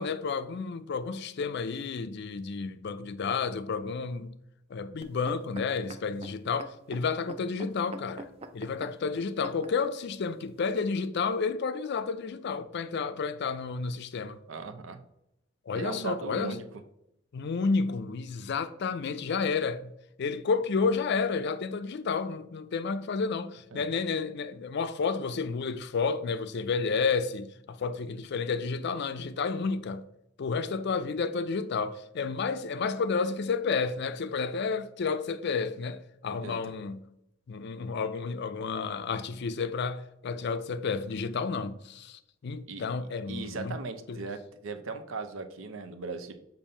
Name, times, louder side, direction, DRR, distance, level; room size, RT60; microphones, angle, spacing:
voice 1, 0.0-4.3 4.7-8.3 8.5-14.4 15.7-16.6 17.3-19.9 20.2-30.0 30.4-37.1 37.5-43.8 44.1-44.2, left 5 dB, 55° left, 0.4 m, -31 dB
sound 1, 5.0-9.9 10.6-10.7, right 2 dB, 30° right, 0.4 m, -45 dB
voice 2, 14.5-15.0 15.7-16.6 23.7-23.9 36.4-36.7 42.7-42.9 43.3-46.3, right 4 dB, 75° right, 0.7 m, -38 dB
7.1 x 2.7 x 5.3 m
head